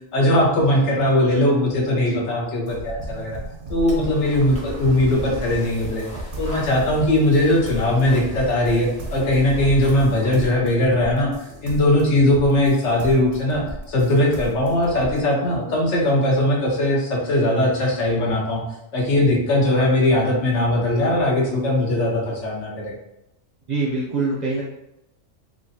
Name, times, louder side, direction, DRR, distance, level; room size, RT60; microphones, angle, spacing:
voice 1, 0.1-3.4 3.7-6.1 6.4-11.3 11.6-18.6 18.9-22.9, left 1 dB, 70° left, -2 dB, 1.0 m, -20 dB
sound 1, 2.7-15.2, right 1 dB, 85° right, 1.0 m, -36 dB
sound 2, 3.8-10.4, left 1 dB, 10° left, 0.5 m, -36 dB
voice 2, 23.7-24.6, right 3 dB, 45° right, -7 dB, 0.6 m, -24 dB
3.1 x 2.4 x 2.6 m, 0.87 s
omnidirectional pair, 1.3 m